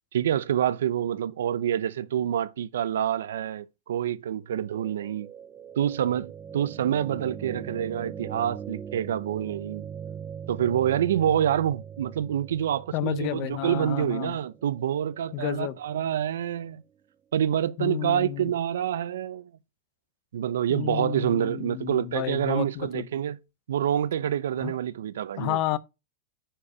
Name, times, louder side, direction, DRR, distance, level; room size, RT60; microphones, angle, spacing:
voice 1, 0.1-5.3 5.8-9.8 10.5-16.8 17.3-19.5 20.3-23.4 23.7-25.6, right 10 dB, 90° right, 0.6 m, -27 dB
sound 1, 4.6-16.7, right 7 dB, 20° right, 0.4 m, -41 dB
voice 2, 12.9-14.4 15.3-15.8 17.8-18.5 20.7-23.1 24.6-24.7 25.4-25.8, left 14 dB, 40° left, 0.6 m, -31 dB
9.9 x 4.5 x 4.8 m
supercardioid pair, 155°, 0 cm